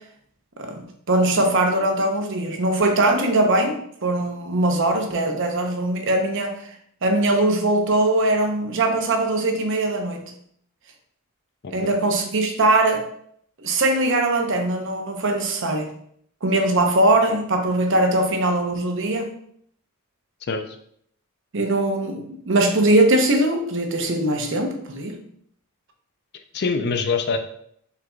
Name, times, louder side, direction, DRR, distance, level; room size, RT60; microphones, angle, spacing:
voice 1, 0.6-6.6 7.0-10.3 11.7-13.0 13.6-15.9 16.4-19.4 21.5-25.2, right 2 dB, 60° right, 4 dB, 0.7 m, -21 dB
voice 2, 26.5-27.4, left 4 dB, 50° left, 7 dB, 0.5 m, -24 dB
5.8 x 3.8 x 2.3 m, 0.67 s
head